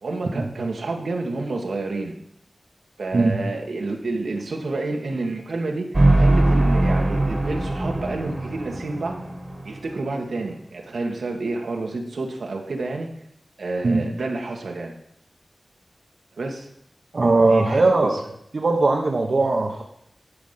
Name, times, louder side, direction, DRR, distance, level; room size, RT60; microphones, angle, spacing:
voice 1, 0.0-2.1 3.0-9.3 9.6-13.1 13.6-15.0 16.4-16.7 17.5-18.2, right 3 dB, 85° right, 1 dB, 1.7 m, -29 dB
sound 1, 5.9-10.0, right 2 dB, 45° right, 1.7 m, -21 dB
voice 2, 17.1-18.1 18.5-19.8, right 3 dB, 65° right, 1 dB, 1.3 m, -19 dB
11.5 x 5.0 x 5.9 m, 0.71 s
cardioid pair, 40°, 0 cm